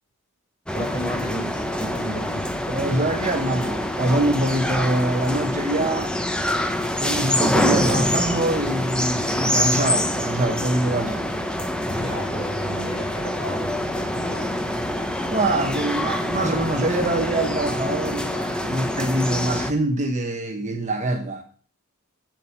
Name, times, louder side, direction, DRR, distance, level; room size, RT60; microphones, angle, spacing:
voice 1, 0.7-2.4 11.9-14.6, equal, 25° left, 4.5 m, -33 dB
sound 1, 0.7-19.7, left 1 dB, 5° left, 0.9 m, -25 dB
voice 2, 2.7-6.1 7.0-11.2 15.3-21.4, right 1 dB, 30° right, 1.2 m, -24 dB
9.0 x 7.6 x 6.9 m
head